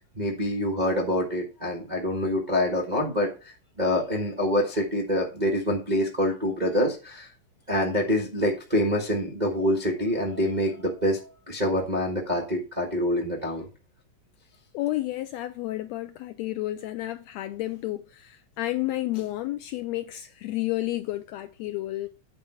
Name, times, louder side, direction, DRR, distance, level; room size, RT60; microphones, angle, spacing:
voice 1, 0.1-3.3 3.8-7.3 7.7-13.7, equal, 35° right, 0.7 m, -26 dB
voice 2, 14.7-22.1, left 16 dB, 80° left, 1.6 m, -31 dB
8.9 x 4.6 x 5.9 m
omnidirectional pair, 3.5 m